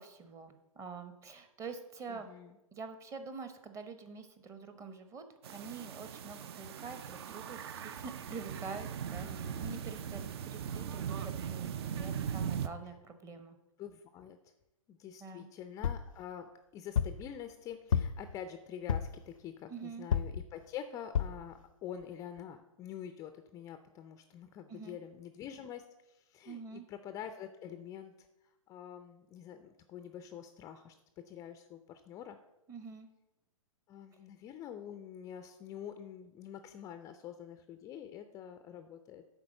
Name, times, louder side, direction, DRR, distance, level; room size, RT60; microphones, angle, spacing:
voice 1, 0.0-2.3 2.7-13.6 15.2-15.5 19.7-20.1 24.7-25.0 26.5-26.8 32.7-33.1, right 4 dB, 15° right, 9 dB, 0.9 m, -46 dB
voice 2, 2.1-2.6 9.2-9.8 13.2-13.4 13.8-14.4 14.9-28.1 28.7-30.9 31.2-32.4 33.9-39.2, left 9 dB, 20° left, 9 dB, 0.4 m, -46 dB
sound 1, 5.4-12.7, right 8 dB, 45° right, 0.5 m, -39 dB
sound 2, 15.8-16.1 17.0-17.3 17.9-18.3 18.9-19.2 20.1-20.5 21.2-21.4 22.0-22.1 22.4-22.5, left 7 dB, 70° left, 0.5 m, -31 dB
9.8 x 4.1 x 6.4 m, 0.96 s
figure-of-eight pair, 115°, 18 cm